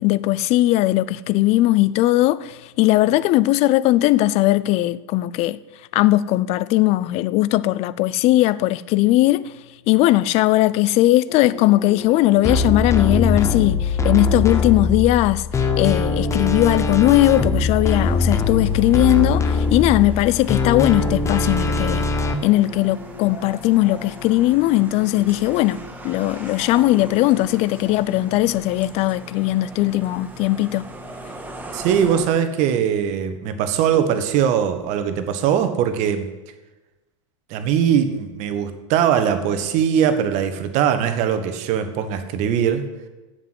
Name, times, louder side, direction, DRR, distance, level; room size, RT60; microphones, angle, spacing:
voice 1, 0.0-5.6 5.9-9.5 9.9-15.5 15.8-22.1 22.4-30.8, left 16 dB, 40° left, 0.5 m, -18 dB
sound 1, 11.3-28.0, left 4 dB, 80° left, 2.0 m, -40 dB
sound 2, 12.4-22.3, left 3 dB, 20° left, 1.0 m, -21 dB
sound 3, 17.9-32.3, equal, 10° right, 1.6 m, -40 dB
voice 2, 31.7-36.3 37.5-42.8, right 8 dB, 45° right, 1.3 m, -21 dB
8.0 x 7.4 x 7.8 m
hypercardioid pair, 90°, 16 cm